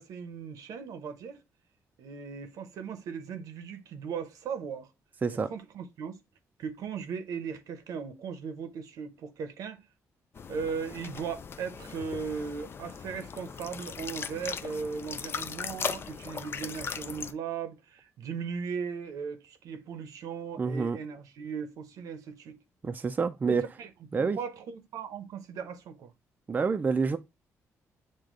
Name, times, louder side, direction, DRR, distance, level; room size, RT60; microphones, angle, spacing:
voice 1, 0.0-1.4 2.0-4.9 5.3-6.2 6.6-9.8 10.5-22.6 23.5-23.9 24.2-26.1, right 6 dB, 80° right, 0.8 m, -38 dB
sound 1, 10.4-17.3, left 6 dB, 40° left, 0.4 m, -38 dB
voice 2, 20.6-21.0 22.8-23.6 24.1-24.4 26.5-27.2, right 5 dB, 30° right, 0.4 m, -27 dB
6.4 x 2.2 x 3.7 m
cardioid pair, 105°, 6 cm